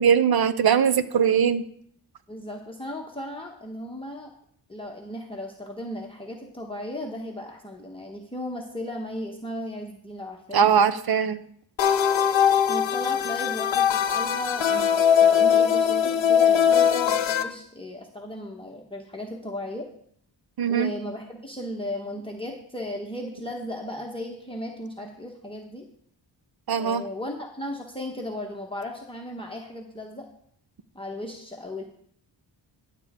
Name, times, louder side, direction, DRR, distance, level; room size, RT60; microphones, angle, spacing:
voice 1, 0.0-1.6 10.5-11.4 20.6-20.9 26.7-27.0, right 7 dB, 55° right, 13 dB, 0.7 m, -21 dB
voice 2, 2.3-4.3 4.7-10.7 12.7-19.9 20.7-25.9 26.8-30.3 30.9-31.8, left 1 dB, 10° left, -1 dB, 1.2 m, -36 dB
sound 1, 11.8-17.4, left 8 dB, 80° left, 0.9 m, -21 dB
12.0 x 8.2 x 3.7 m, 0.66 s
wide cardioid pair, 90°, 45 cm